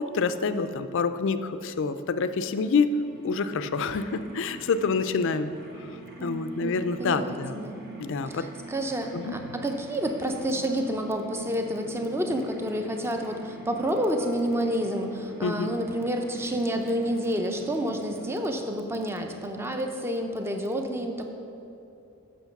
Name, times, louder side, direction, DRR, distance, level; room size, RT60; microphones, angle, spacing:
voice 1, 0.0-5.5 5.8-5.9 6.2-7.6 8.0-8.5 9.1-9.3 15.4-15.7, left 4 dB, 60° left, 11 dB, 0.4 m, -27 dB
sound 1, 2.3-19.0, right 2 dB, 45° right, 1.1 m, -45 dB
voice 2, 6.2-7.8 8.3-21.2, equal, 10° right, 4 dB, 0.6 m, -29 dB
8.1 x 6.1 x 5.8 m, 2.9 s
head